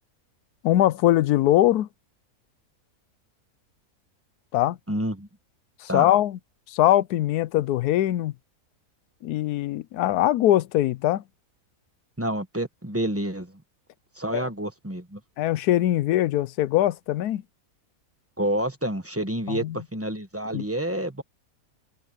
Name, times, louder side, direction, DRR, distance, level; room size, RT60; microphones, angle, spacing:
voice 1, 0.6-1.9 4.5-4.8 5.8-6.4 6.7-8.3 9.2-11.2 14.3-14.5 15.4-17.4 19.5-19.8 20.5-20.6, left 13 dB, 85° left, 1.1 m, -22 dB
voice 2, 4.9-5.3 5.9-6.1 12.2-13.5 14.2-15.2 18.4-21.2, right 1 dB, 10° right, 1.0 m, -28 dB
omnidirectional pair, 1.6 m